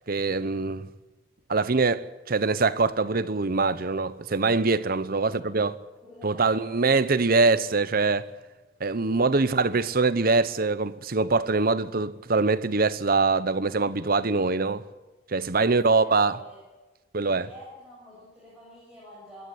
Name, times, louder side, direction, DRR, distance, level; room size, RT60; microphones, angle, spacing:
voice 1, 0.1-0.9 1.5-5.8 6.2-8.3 8.8-14.8 15.3-16.4 17.1-17.5, right 3 dB, 50° right, 0.9 m, -23 dB
voice 2, 5.1-5.5 6.0-6.8 15.5-16.6 17.2-19.5, equal, 5° right, 7.5 m, -48 dB
25.5 x 12.0 x 9.9 m
head